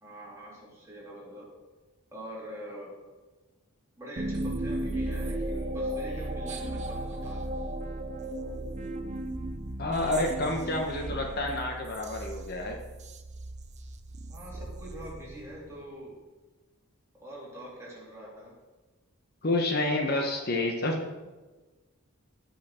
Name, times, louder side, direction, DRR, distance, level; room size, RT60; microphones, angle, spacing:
voice 1, 0.0-1.5 2.1-2.9 4.0-7.4 10.6-12.0 12.3-12.4 14.3-16.2 17.2-18.6 19.8-19.9, right 1 dB, 15° right, -5 dB, 3.0 m, -45 dB
sound 1, 4.2-15.7, right 1 dB, 30° right, 0.6 m, -35 dB
voice 2, 9.8-12.8 19.4-21.0, left 2 dB, 45° left, 2 dB, 1.1 m, -29 dB
16.0 x 5.7 x 4.4 m, 1.2 s
head